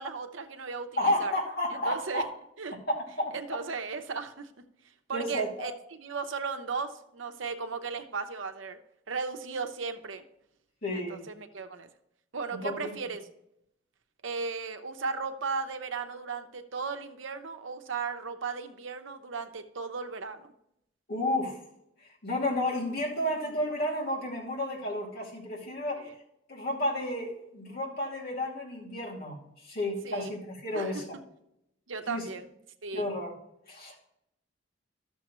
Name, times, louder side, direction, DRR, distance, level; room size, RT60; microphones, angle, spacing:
voice 1, 0.0-1.4 1.7-2.2 2.6-2.8 3.3-4.5 5.1-5.7 6.0-8.8 9.1-10.2 10.9-11.9 12.3-13.2 14.2-20.5 26.0-26.1 30.0-30.3 30.7-31.0 31.9-32.5 32.8-33.1, right 4 dB, 80° right, 7 dB, 0.8 m, -36 dB
voice 2, 1.0-2.2 2.9-3.3 5.1-5.7 10.8-11.2 12.5-12.9 21.1-21.6 22.2-26.1 26.5-29.4 29.6-31.0 32.1-32.2 32.9-33.3 33.7-34.0, left 1 dB, 50° left, -4 dB, 2.5 m, -31 dB
12.0 x 7.0 x 3.1 m, 0.80 s
head